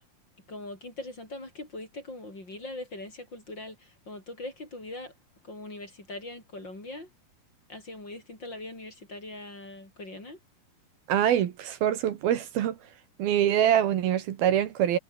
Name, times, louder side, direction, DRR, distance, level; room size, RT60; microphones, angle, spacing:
voice 1, 0.5-5.1 5.4-7.1 7.7-10.4, left 2 dB, 25° left, 7.5 m, -41 dB
voice 2, 11.1-12.8 13.2-15.0, right 10 dB, 70° right, 3.3 m, -24 dB
omnidirectional pair, 4.6 m